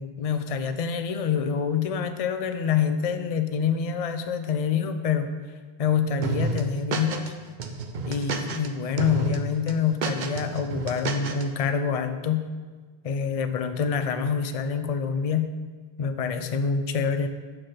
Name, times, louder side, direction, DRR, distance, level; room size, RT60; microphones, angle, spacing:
voice 1, 0.0-5.3 5.8-7.3 8.1-12.5 13.0-15.5 16.0-17.3, left 6 dB, 45° left, 8 dB, 0.5 m, -26 dB
sound 1, 6.2-7.3 7.6-8.7 9.0-9.4 9.7-11.4, right 4 dB, 55° right, 0.7 m, -30 dB
6.2 x 5.8 x 5.0 m, 1.4 s
omnidirectional pair, 1.0 m